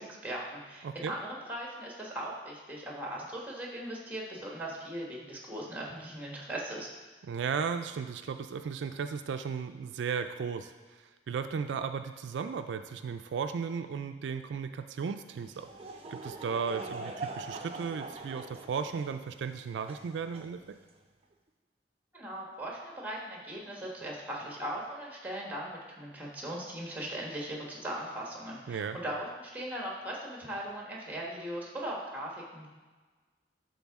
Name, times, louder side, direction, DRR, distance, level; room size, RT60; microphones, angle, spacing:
voice 1, 0.0-6.9 22.1-32.7, right 1 dB, 10° right, -3 dB, 1.3 m, -39 dB
voice 2, 7.2-15.7 16.1-20.8 28.7-29.0, right 6 dB, 80° right, 8 dB, 0.3 m, -35 dB
Laughter / Crowd, 15.3-21.0, right 3 dB, 35° right, 0.5 m, -43 dB
11.5 x 3.8 x 3.6 m, 1.3 s
head